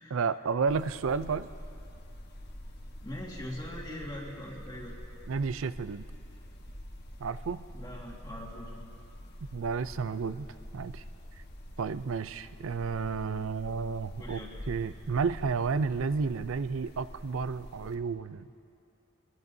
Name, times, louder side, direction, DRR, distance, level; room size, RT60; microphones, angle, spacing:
voice 1, 0.1-1.5 5.3-6.0 7.2-7.6 9.5-10.5 10.7-11.0 11.8-14.4 14.7-18.5, right 5 dB, 75° right, 14 dB, 0.4 m, -31 dB
sound 1, 0.7-18.0, equal, 50° left, 1.3 m, -46 dB
voice 2, 3.0-4.9 7.7-8.8 14.2-14.5, left 1 dB, 20° left, -4 dB, 1.8 m, -41 dB
23.5 x 22.5 x 2.7 m, 2.6 s
head